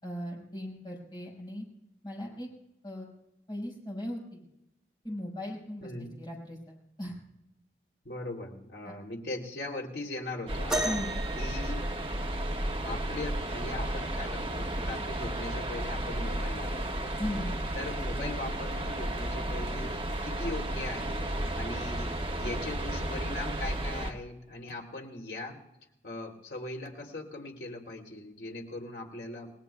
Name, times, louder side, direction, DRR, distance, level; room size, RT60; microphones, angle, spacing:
voice 1, 0.0-1.7 2.0-2.5 2.8-3.1 3.5-4.5 5.0-5.9 6.2-7.1 8.8-9.0 10.8-11.2 17.2-17.6, left 1 dB, 25° left, -3 dB, 5.3 m, -38 dB
voice 2, 5.8-6.1 8.0-11.0 11.4-11.8 12.8-17.1 17.8-20.0 20.2-21.3 21.6-25.6 26.0-29.5, left 2 dB, 70° left, 0 dB, 3.1 m, -40 dB
sound 1, 10.5-24.1, right 1 dB, 30° right, 1.4 m, -33 dB
sound 2, 10.7-12.6 14.3-14.4 15.1-15.4 16.3-16.4, right 1 dB, 5° right, 2.1 m, -34 dB
30.0 x 19.0 x 2.3 m, 0.88 s
head